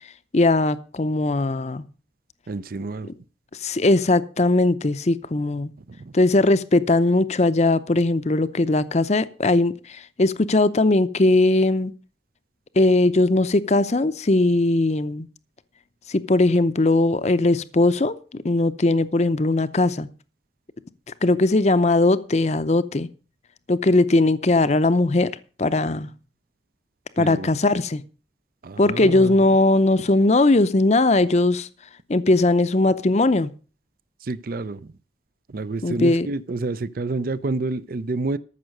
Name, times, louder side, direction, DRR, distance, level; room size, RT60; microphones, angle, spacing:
voice 1, 0.3-1.8 3.6-5.7 6.1-11.9 12.8-15.3 16.1-20.1 21.2-23.1 23.7-25.3 25.6-26.1 27.2-28.0 28.8-31.7 32.1-33.5 35.8-36.3, left 2 dB, 40° left, 0.6 m, -19 dB
voice 2, 2.5-3.1 5.9-6.2 27.2-27.5 28.6-29.6 34.2-34.9 35.5-38.4, right 3 dB, 50° right, 0.5 m, -29 dB
14.0 x 6.3 x 6.4 m
head